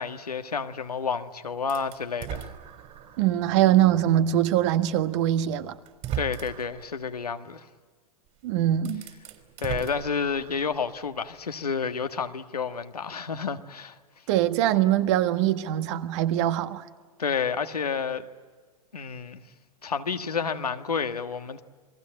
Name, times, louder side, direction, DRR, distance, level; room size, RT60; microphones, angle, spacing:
voice 1, 0.0-2.5 6.1-7.7 9.6-14.0 17.2-18.2 18.9-19.4 19.8-21.6, left 5 dB, 85° left, 1.6 m, -30 dB
sound 1, 1.7-3.3 3.9-4.0 5.2-5.3 5.9-6.8 8.3-8.4 8.8-10.7, right 10 dB, 35° right, 3.8 m, -37 dB
voice 2, 3.2-5.7 8.4-9.0 14.3-16.8, right 12 dB, 50° right, 1.6 m, -23 dB
28.5 x 21.0 x 8.9 m
figure-of-eight pair, 100°, 19 cm